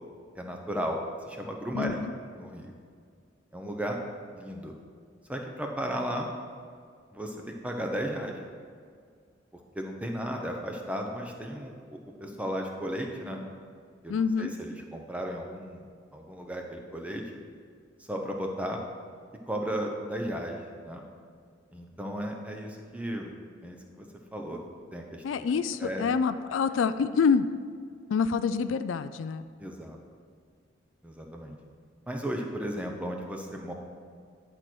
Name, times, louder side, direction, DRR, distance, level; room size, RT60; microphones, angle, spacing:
voice 1, 0.3-1.0 1.3-2.1 2.4-2.7 3.5-4.0 4.3-4.7 5.3-6.3 7.1-8.4 9.7-13.4 14.0-15.8 16.1-17.2 18.1-18.8 19.5-20.6 20.8-21.0 21.7-23.3 23.6-24.0 24.3-24.6 24.9-25.5 25.8-26.0 29.6-30.0 31.0-31.6 32.1-33.7, equal, 5° right, 1 dB, 0.8 m, -35 dB
voice 2, 1.7-2.1 14.1-14.5 25.2-27.5 28.1-29.4, left 5 dB, 70° left, 12 dB, 0.3 m, -26 dB
10.5 x 4.5 x 6.2 m, 2.1 s
head